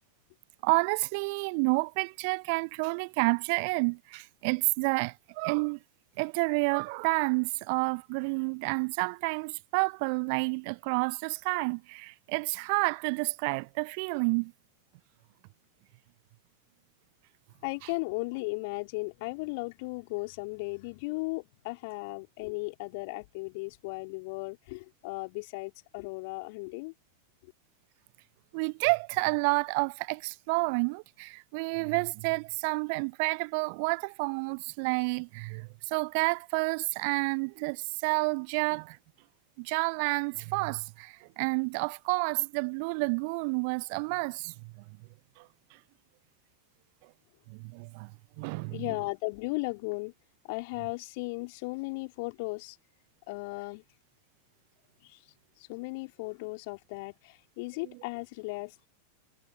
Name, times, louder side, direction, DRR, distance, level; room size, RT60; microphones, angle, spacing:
voice 1, 0.6-5.8 6.2-14.5 28.5-39.0 39.6-44.5 45.4-45.5 47.5-48.1 48.4-48.8, right 33 dB, 45° right, 0.4 m, -29 dB
voice 2, 17.6-26.9 48.7-50.1 50.4-52.8 53.3-53.8 55.0-55.2 55.6-58.9, left 27 dB, 45° left, 3.9 m, -36 dB
figure-of-eight pair, 90°, 0 cm